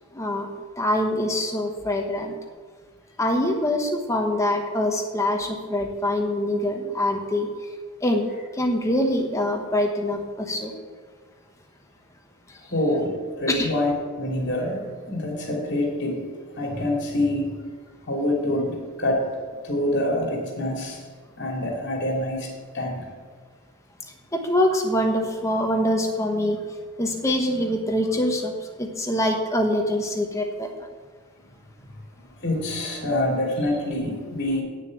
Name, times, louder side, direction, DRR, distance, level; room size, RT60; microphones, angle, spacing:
voice 1, 0.1-0.5 0.8-2.3 3.2-7.5 8.0-10.7 13.5-13.7 24.3-26.6 27.0-28.5 28.8-30.7, left 1 dB, 15° left, 3 dB, 1.1 m, -24 dB
voice 2, 12.7-16.2 16.6-17.5 18.1-19.3 19.6-21.0 21.4-23.1 32.4-34.6, left 1 dB, 50° left, 0 dB, 2.7 m, -26 dB
9.0 x 6.5 x 8.7 m, 1.5 s
head